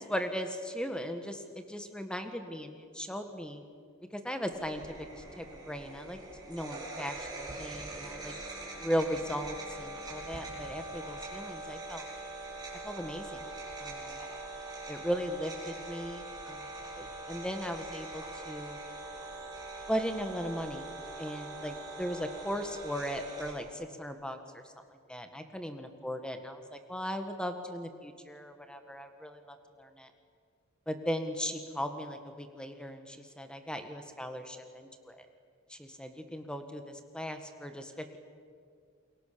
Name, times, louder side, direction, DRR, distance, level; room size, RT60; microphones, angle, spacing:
voice 1, 0.0-3.6 4.1-6.2 6.5-8.3 8.8-12.1 12.8-13.4 13.8-14.3 14.9-18.8 19.9-20.9 21.2-24.6 25.1-30.1 30.9-35.3 35.7-38.2, equal, 5° left, 7 dB, 1.7 m, -37 dB
sound 1, 4.5-23.5, right 2 dB, 20° right, 7.6 m, -43 dB
28.5 x 23.0 x 7.0 m, 2.2 s
head